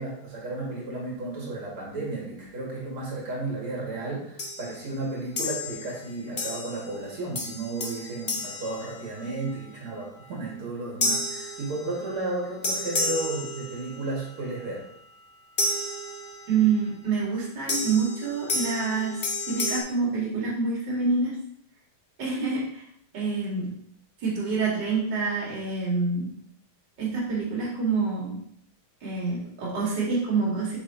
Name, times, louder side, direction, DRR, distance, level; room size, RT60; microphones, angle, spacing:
voice 1, 0.0-14.8, right 2 dB, 90° right, -4 dB, 3.1 m, -33 dB
sound 1, 4.4-4.8 5.4-5.9 6.4-6.9 7.3-9.5 11.0-12.2 12.6-14.1 15.6-16.6 17.7-19.8, left 2 dB, 55° left, 0.5 m, -31 dB
voice 2, 16.5-21.3 22.2-22.8 23.1-23.7 24.2-26.3 27.0-28.4 29.0-30.8, right 4 dB, 55° right, -5 dB, 2.7 m, -27 dB
7.3 x 6.3 x 3.0 m, 0.69 s
omnidirectional pair, 2.3 m